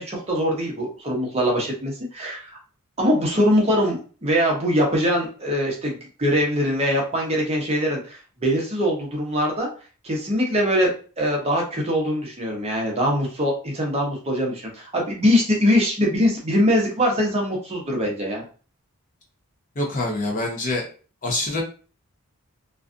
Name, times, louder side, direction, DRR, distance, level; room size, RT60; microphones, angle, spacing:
voice 1, 0.0-2.6 3.0-9.7 10.0-18.4, equal, 30° right, -1 dB, 0.6 m, -22 dB
voice 2, 19.8-20.9 21.2-21.6, left 2 dB, 35° left, 0 dB, 0.6 m, -25 dB
2.4 x 2.3 x 2.4 m, 0.37 s
head